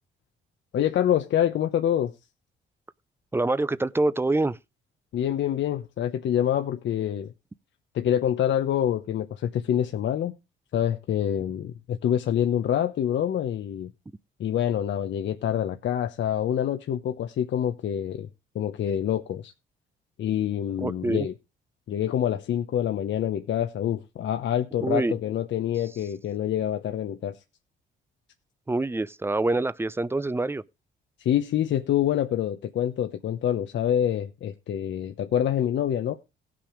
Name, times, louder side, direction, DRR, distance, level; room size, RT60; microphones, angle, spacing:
voice 1, 0.7-2.1 5.1-7.3 7.9-10.3 10.7-13.9 14.4-18.3 18.5-19.5 20.2-21.3 21.9-27.4 31.2-36.2, left 10 dB, 65° left, 0.9 m, -26 dB
voice 2, 3.3-4.6 20.8-21.3 24.8-25.2 28.7-30.6, right 2 dB, 10° right, 0.5 m, -25 dB
16.5 x 6.1 x 5.0 m
cardioid pair, 90°, 20 cm